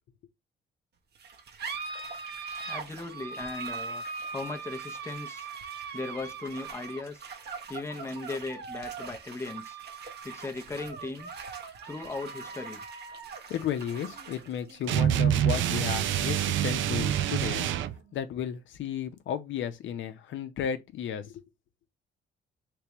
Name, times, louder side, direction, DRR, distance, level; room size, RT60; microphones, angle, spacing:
sound 1, 1.2-18.1, right 5 dB, 55° right, 0.9 m, -41 dB
voice 1, 2.7-4.0 4.3-5.5 5.9-7.3 7.7-9.8 10.2-11.3 11.9-12.8, left 3 dB, 15° left, 0.6 m, -37 dB
voice 2, 13.5-17.7 18.1-21.4, left 9 dB, 75° left, 0.7 m, -34 dB
sound 2, 14.9-18.0, right 10 dB, 75° right, 0.4 m, -26 dB
3.4 x 3.3 x 3.0 m
cardioid pair, 90°, 20 cm